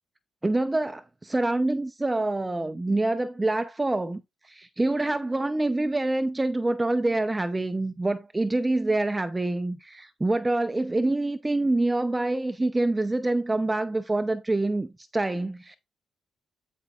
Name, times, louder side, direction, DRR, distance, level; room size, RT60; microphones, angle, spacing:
voice 1, 0.4-15.8, right 2 dB, 15° right, 0.6 m, -26 dB
12.5 x 5.4 x 2.4 m
cardioid pair, 90°, 0 cm